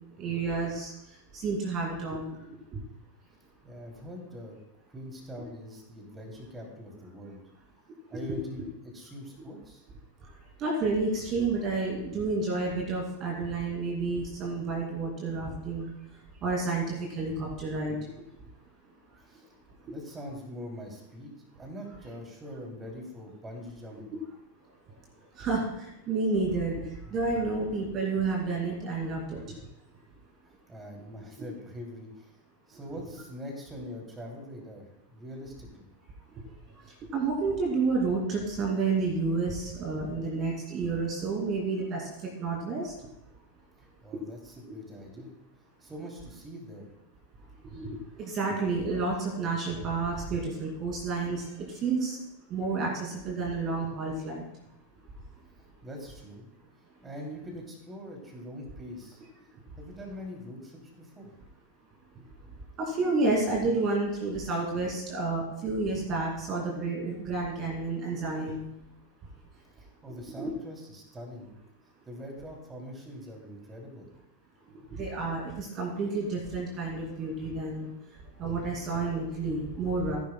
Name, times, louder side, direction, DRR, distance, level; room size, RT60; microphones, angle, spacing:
voice 1, 0.2-0.9 1.3-2.3 2.7-2.8 10.6-15.9 16.4-18.0 25.4-26.8 27.1-29.4 37.1-42.1 42.4-42.9 44.7-44.8 47.7-47.9 48.2-52.2 52.5-54.4 62.8-68.7 70.4-70.5 74.9-77.9 78.4-80.2, right 3 dB, 30° right, -1 dB, 2.5 m, -30 dB
voice 2, 3.6-4.6 4.9-7.4 8.1-9.9 19.2-19.5 19.8-21.3 21.6-24.2 27.0-27.1 30.5-32.4 32.7-35.9 43.8-45.4 45.8-46.9 55.5-56.5 57.0-59.2 59.8-61.3 69.6-71.6 72.1-74.1, equal, 15° right, 0 dB, 2.8 m, -43 dB
16.5 x 10.5 x 2.2 m, 0.83 s
figure-of-eight pair, 90°, 0 cm